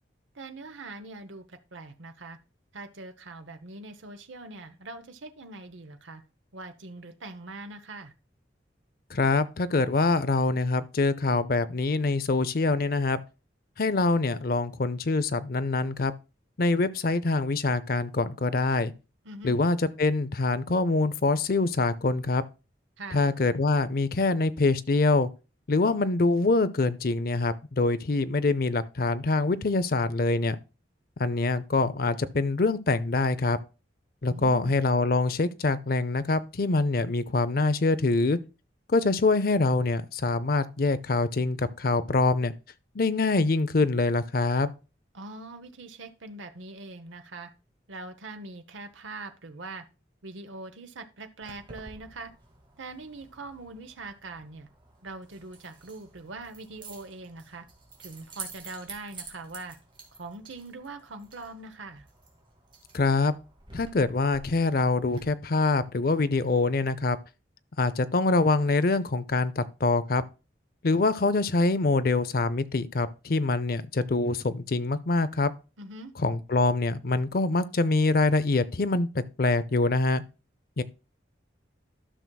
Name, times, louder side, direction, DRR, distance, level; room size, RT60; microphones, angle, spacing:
voice 1, 0.3-2.4 2.7-6.2 6.5-8.1 19.2-19.6 23.0-23.3 34.3-34.8 45.1-47.5 47.9-49.8 50.2-52.3 52.8-54.7 55.0-57.6 58.0-59.8 60.2-62.0 75.8-76.1, right 2 dB, 90° right, 0.9 m, -42 dB
voice 2, 9.1-13.2 13.8-16.1 16.6-18.9 19.4-22.4 23.1-25.3 25.7-30.6 31.2-33.6 34.2-38.4 38.9-42.5 42.9-44.7 62.9-63.3 63.7-67.2 67.8-70.2 70.8-75.5 76.2-79.1 79.4-80.2 80.8-80.9, left 3 dB, 50° left, 0.5 m, -25 dB
Keys jangling, 51.4-65.2, right 3 dB, 25° right, 1.8 m, -49 dB
12.5 x 6.0 x 2.3 m
head